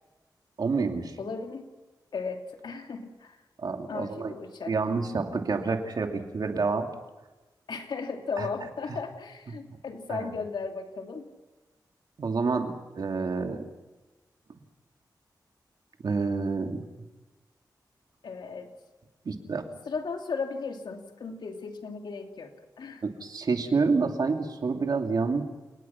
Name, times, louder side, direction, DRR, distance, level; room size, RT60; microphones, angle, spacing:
voice 1, 0.6-1.1 3.6-4.3 4.7-6.9 8.4-8.5 10.1-10.3 12.2-13.7 16.0-16.8 19.2-19.7 23.0-25.4, right 4 dB, 65° right, 4 dB, 2.7 m, -28 dB
voice 2, 1.2-1.7 2.1-3.4 3.9-4.7 7.7-11.3 18.2-18.7 19.9-22.5 22.8-23.0, left 4 dB, 90° left, 4 dB, 2.7 m, -36 dB
30.0 x 19.0 x 5.9 m, 1.2 s
wide cardioid pair, 110°, 8 cm